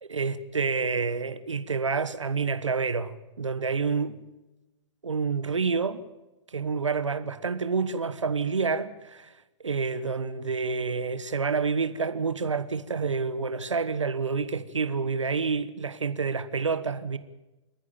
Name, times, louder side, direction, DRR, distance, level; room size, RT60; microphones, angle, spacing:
voice 1, 0.1-4.2 5.0-6.0 6.5-9.3 9.6-17.2, right 5 dB, 90° right, 1.3 m, -28 dB
29.0 x 11.0 x 8.9 m
hypercardioid pair, 120°, 15 cm